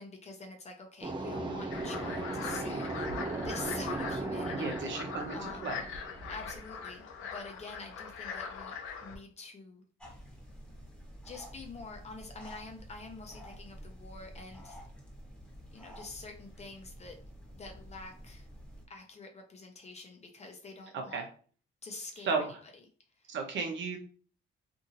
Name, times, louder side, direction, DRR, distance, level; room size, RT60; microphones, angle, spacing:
voice 1, 0.0-5.8 6.3-9.9 11.2-14.8 15.7-17.2 17.5-18.5 18.9-21.2 21.8-22.5 23.2-23.4, left 3 dB, 35° left, 3 dB, 0.7 m, -47 dB
sound 1, 1.0-6.7, right 2 dB, 25° right, 0.7 m, -37 dB
sound 2, 1.7-9.2, left 5 dB, 85° left, 0.5 m, -41 dB
voice 2, 4.5-5.8 20.9-21.2 22.2-22.6 23.3-24.0, right 4 dB, 70° right, 3 dB, 0.8 m, -34 dB
sound 3, 10.0-18.8, equal, 5° left, 1.0 m, -50 dB
2.7 x 2.6 x 2.7 m, 0.43 s
cardioid pair, 90°, 20 cm